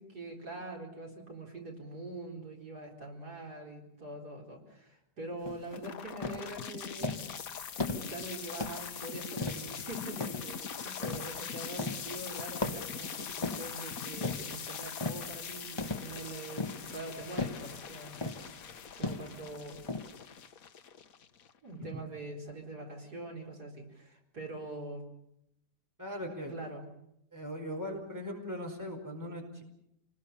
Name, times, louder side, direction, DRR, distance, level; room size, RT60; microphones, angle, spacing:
voice 1, 0.0-7.3 7.7-18.3 19.0-19.8 21.6-25.0 26.5-26.8, right 2 dB, 65° right, 0 dB, 4.9 m, -44 dB
sound 1, 5.5-5.7 6.2-6.5 7.0-7.4 7.8-8.2 8.6-8.9 9.4-9.8 10.2-10.6 11.0-11.4 11.8-12.2 12.6-13.8 14.2-14.6 15.0-15.3 15.8-16.2 16.6-17.0 17.4-17.7 18.2-18.5 19.0-19.4 19.9-20.0, left 3 dB, 15° left, 1.4 m, -36 dB
sound 2, 5.7-21.7, left 7 dB, 55° left, 1.4 m, -42 dB
voice 2, 26.0-26.5 27.3-29.6, equal, 10° right, 2 dB, 4.8 m, -39 dB
28.5 x 20.5 x 7.0 m, 0.80 s
omnidirectional pair, 1.8 m